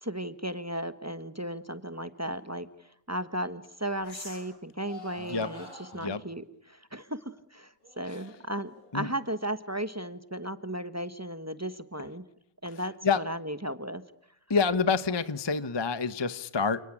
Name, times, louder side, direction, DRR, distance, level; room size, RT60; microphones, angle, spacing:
voice 1, 0.0-2.7 3.1-5.6 5.9-12.2 12.6-12.9 13.2-14.0, right 1 dB, 10° right, 12 dB, 0.8 m, -35 dB
sound 1, 2.3-2.4 4.0-4.5 4.8-6.2 7.8-9.4, left 1 dB, 50° left, 8.6 m, -47 dB
voice 2, 5.2-5.5 5.9-6.2 8.1-8.2 8.9-9.1 12.7-13.2 14.5-16.8, left 5 dB, 25° left, 13 dB, 0.5 m, -28 dB
30.0 x 19.0 x 9.9 m, 0.72 s
omnidirectional pair, 2.4 m